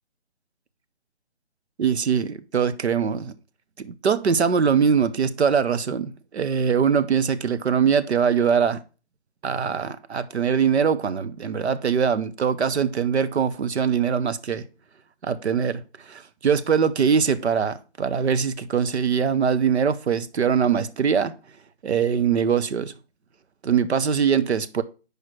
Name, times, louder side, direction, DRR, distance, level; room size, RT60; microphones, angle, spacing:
voice 1, 1.8-3.3 3.8-8.8 9.4-14.6 15.2-21.3 21.8-22.9 23.6-24.8, right 7 dB, 75° right, 0.7 m, -22 dB
4.9 x 4.7 x 6.2 m
hypercardioid pair, 175°, 33 cm